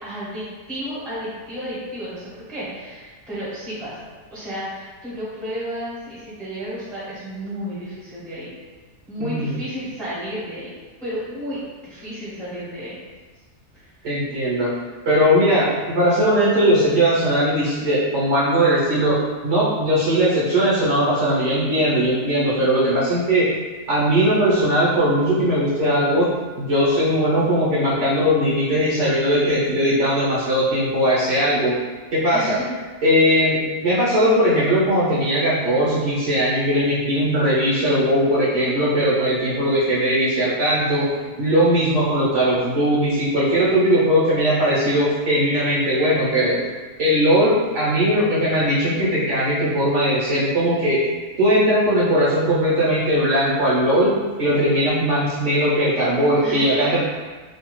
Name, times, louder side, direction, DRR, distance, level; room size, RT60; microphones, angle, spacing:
voice 1, 0.0-4.0 4.3-8.5 9.1-10.7 11.0-13.0 13.7-14.1 32.3-32.7 56.4-57.0, equal, ahead, -10 dB, 0.6 m, -32 dB
voice 2, 9.2-9.6 14.0-14.7 15.0-19.2 19.4-23.5 23.9-31.7 32.1-32.6 33.0-41.1 41.4-46.6 47.0-51.0 51.4-54.1 54.4-57.0, equal, 60° right, -8 dB, 0.9 m, -19 dB
2.7 x 2.3 x 3.0 m, 1.4 s
omnidirectional pair, 1.6 m